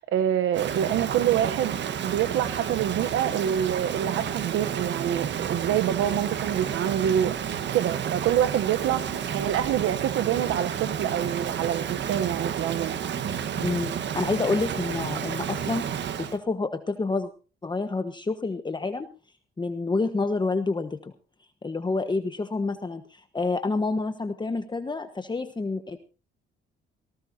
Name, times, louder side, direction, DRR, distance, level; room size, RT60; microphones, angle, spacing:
voice 1, 0.0-1.8 2.0-7.4 7.7-13.0, right 10 dB, 80° right, 9 dB, 1.0 m, -26 dB
Rain, 0.5-16.4, right 8 dB, 65° right, 1.5 m, -31 dB
voice 2, 13.6-17.3 17.6-19.1 19.6-21.1 21.6-26.0, left 3 dB, 20° left, 8 dB, 1.3 m, -28 dB
18.5 x 18.0 x 2.8 m, 0.35 s
cardioid pair, 90°, 20 cm